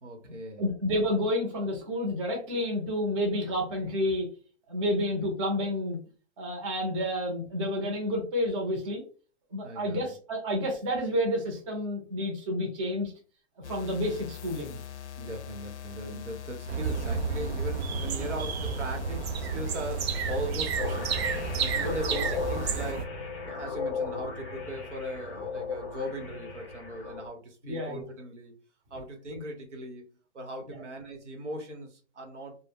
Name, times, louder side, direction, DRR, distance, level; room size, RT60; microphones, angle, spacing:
voice 1, 0.0-0.7 9.6-10.1 15.2-21.2 21.6-23.1 23.5-28.5 28.9-30.1 30.3-32.6, right 1 dB, 85° right, 3 dB, 1.0 m, -39 dB
voice 2, 0.6-4.3 4.7-6.0 6.4-9.0 9.5-13.1 13.7-14.8 18.2-18.4 21.8-21.9 27.6-28.0 30.7-30.8, left 1 dB, 25° right, 0 dB, 0.7 m, -30 dB
Electromagnetic Mic on XBox Battery, 13.6-22.9, left 9 dB, 75° left, 0.5 m, -42 dB
sound 1, 16.7-23.0, right 5 dB, 65° right, 0.5 m, -31 dB
sound 2, 20.8-27.3, left 4 dB, 25° left, 0.5 m, -36 dB
2.1 x 2.0 x 3.4 m, 0.38 s
hypercardioid pair, 150°, 35 cm